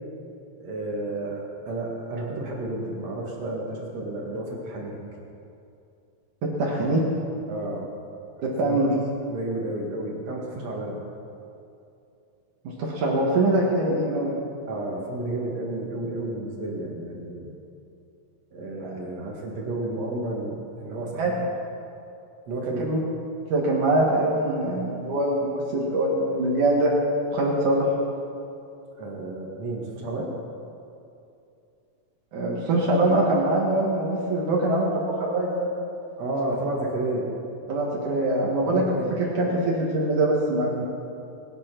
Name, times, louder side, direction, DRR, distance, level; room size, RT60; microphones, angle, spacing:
voice 1, 0.6-5.0 7.5-7.8 8.6-8.8 9.3-11.0 14.7-17.6 18.5-21.4 22.5-22.9 28.9-30.3 36.2-37.3 38.7-39.2, right 2 dB, 60° right, -1 dB, 3.1 m, -31 dB
voice 2, 6.4-7.0 8.4-8.9 12.8-14.3 18.8-18.9 21.2-21.3 22.8-23.0 23.5-26.9 27.3-27.9 32.3-35.7 37.7-38.8 39.2-40.9, right 1 dB, 75° right, -3 dB, 3.3 m, -23 dB
21.5 x 9.2 x 6.1 m, 2.6 s
omnidirectional pair, 3.5 m